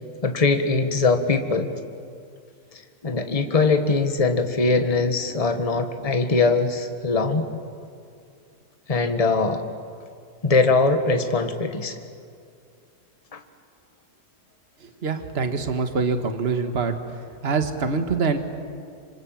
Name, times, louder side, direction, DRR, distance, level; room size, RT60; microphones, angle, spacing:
voice 1, 0.2-1.7 3.0-7.4 8.9-9.6 10.4-12.0 13.3-13.4, left 3 dB, 25° left, 7 dB, 1.5 m, -21 dB
voice 2, 15.0-17.0 17.4-18.4, right 4 dB, 40° right, 7 dB, 1.8 m, -24 dB
27.0 x 26.0 x 7.6 m, 2.3 s
omnidirectional pair, 1.7 m